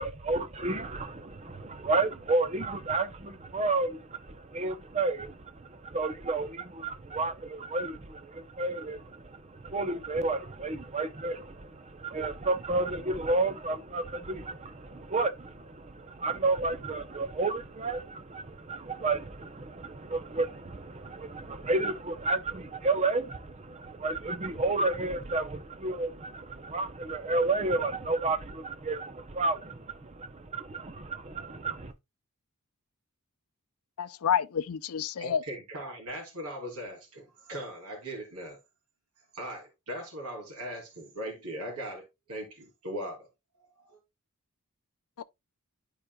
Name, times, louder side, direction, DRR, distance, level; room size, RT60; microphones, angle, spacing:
voice 1, 0.0-31.9, right 3 dB, 30° right, 0.6 m, -31 dB
voice 2, 34.0-35.4 45.2-45.3, left 8 dB, 70° left, 0.5 m, -29 dB
voice 3, 35.2-38.6 39.3-42.0 42.3-43.3 43.8-44.0, equal, 85° right, 3.0 m, -39 dB
11.5 x 4.9 x 2.3 m
head